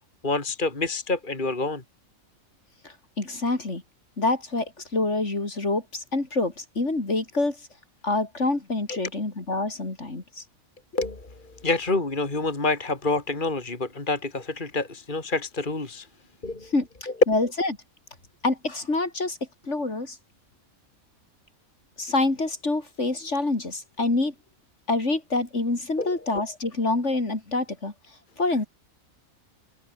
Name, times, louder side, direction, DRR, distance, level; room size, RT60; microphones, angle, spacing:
voice 1, 0.2-1.8 8.9-9.0 10.9-16.1 16.4-16.7 17.1-17.2 26.0-26.2, left 3 dB, 35° left, 3.0 m, -28 dB
voice 2, 2.8-3.8 4.2-7.6 8.0-10.4 16.7-17.7 18.4-19.4 19.6-20.2 22.0-24.3 24.9-27.9 28.4-28.7, left 2 dB, 55° left, 4.0 m, -26 dB
omnidirectional pair, 1.5 m